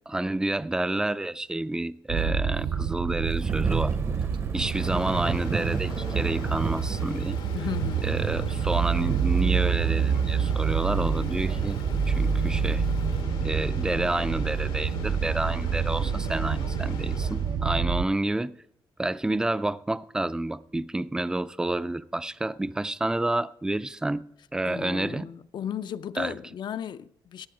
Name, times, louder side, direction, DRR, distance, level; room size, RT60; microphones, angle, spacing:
voice 1, 0.1-4.0 4.5-7.4 8.0-11.8 12.1-12.8 13.4-18.5 19.0-24.3 24.5-25.3 26.2-26.4, right 2 dB, 10° right, 0.3 m, -29 dB
sound 1, 2.1-18.0, right 7 dB, 75° right, 0.6 m, -27 dB
Thunder / Rain, 3.4-13.2, right 4 dB, 30° right, 0.7 m, -35 dB
sound 2, 4.7-17.7, left 6 dB, 90° left, 1.3 m, -41 dB
voice 2, 7.5-8.7 24.6-27.5, left 9 dB, 60° left, 0.5 m, -36 dB
17.0 x 7.8 x 4.9 m
wide cardioid pair, 135°, 8 cm